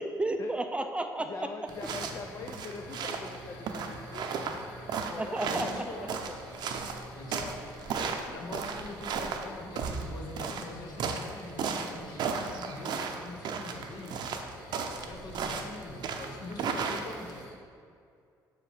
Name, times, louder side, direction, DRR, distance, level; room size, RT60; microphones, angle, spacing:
voice 1, 0.0-1.5 5.2-6.1, right 2 dB, 15° right, 6 dB, 0.4 m, -32 dB
voice 2, 1.2-4.8 5.1-6.1, left 4 dB, 45° left, 3 dB, 0.5 m, -43 dB
sound 1, 1.7-17.5, left 1 dB, 90° left, 1.1 m, -50 dB
sound 2, 1.7-17.4, right 5 dB, 70° right, 0.6 m, -35 dB
voice 3, 5.4-6.1 7.1-7.6 8.2-17.5, left 2 dB, 60° left, 2 dB, 1.0 m, -44 dB
6.2 x 4.8 x 5.0 m, 2.3 s
cardioid pair, 100°, 8 cm